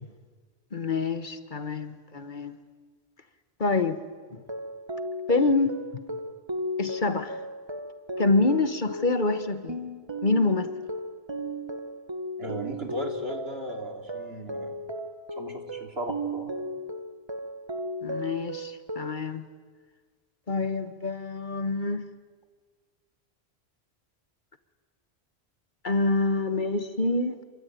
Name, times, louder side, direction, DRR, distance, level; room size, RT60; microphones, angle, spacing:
voice 1, 0.7-2.5 3.6-4.0 4.3-4.4 5.3-5.7 6.8-7.4 8.2-9.8 10.2-10.7 18.0-19.4 20.5-22.1 25.8-27.4, left 3 dB, 50° left, 10 dB, 1.4 m, -26 dB
sound 1, 4.4-19.2, equal, 25° right, 1.4 m, -35 dB
voice 2, 12.4-14.8 15.4-16.6, right 1 dB, 70° right, 4 dB, 3.3 m, -36 dB
27.0 x 23.0 x 9.4 m, 1.5 s
omnidirectional pair, 1.1 m